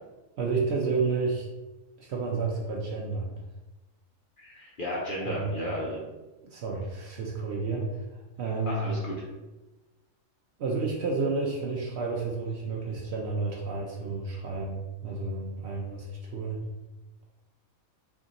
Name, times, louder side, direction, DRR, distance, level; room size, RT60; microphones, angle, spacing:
voice 1, 0.4-1.5 2.0-3.3 5.2-5.5 6.4-8.9 10.6-16.6, right 4 dB, 65° right, -1 dB, 0.7 m, -31 dB
voice 2, 4.4-6.0 8.7-9.1, equal, 55° left, -4 dB, 0.6 m, -33 dB
3.5 x 2.5 x 3.9 m, 1.1 s
omnidirectional pair, 1.5 m